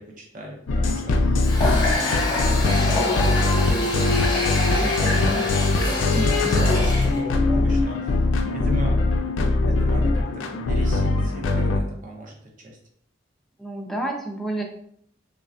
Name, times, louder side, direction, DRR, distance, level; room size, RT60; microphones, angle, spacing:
voice 1, 0.0-1.4 1.7-4.2 4.7-5.5 5.7-9.0 9.6-12.8, right 1 dB, 40° right, 0 dB, 0.6 m, -36 dB
sound 1, 0.7-11.8, left 2 dB, 75° left, 0.3 m, -21 dB
Water tap faucet, 1.4-7.2, left 2 dB, 20° left, 0.7 m, -27 dB
voice 2, 4.8-5.4 6.1-6.6 13.6-14.6, right 1 dB, ahead, 0 dB, 0.3 m, -30 dB
3.3 x 2.1 x 2.4 m, 0.66 s
head